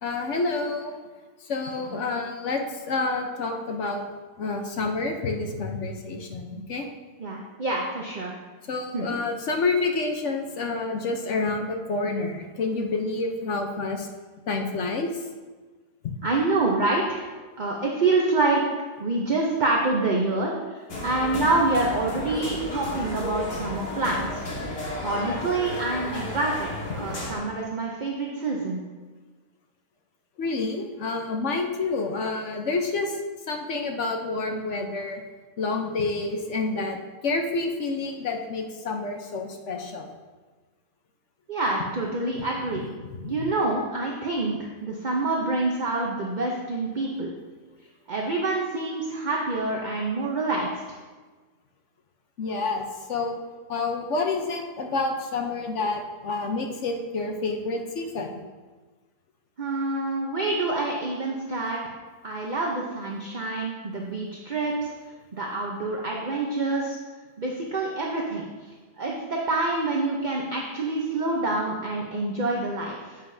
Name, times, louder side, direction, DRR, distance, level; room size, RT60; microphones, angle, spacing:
voice 1, 0.0-0.9 1.4-4.0 4.4-6.8 8.7-14.1 14.5-15.1 30.4-33.2 33.5-35.2 35.6-37.0 37.2-40.1 43.2-43.4 52.4-53.4 53.7-58.3, left 3 dB, 55° left, 3 dB, 1.0 m, -28 dB
voice 2, 7.2-8.4 8.9-9.2 16.2-17.2 17.6-18.6 19.0-24.4 25.0-28.8 41.5-42.9 43.2-47.3 48.1-50.7 59.6-61.9 62.2-64.9 65.3-67.0 67.4-68.5 69.0-73.2, right 2 dB, 40° right, -1 dB, 0.7 m, -27 dB
sound 1, 20.9-27.3, left 1 dB, 80° left, 2.4 m, -33 dB
10.5 x 8.2 x 2.7 m, 1.3 s
omnidirectional pair, 1.8 m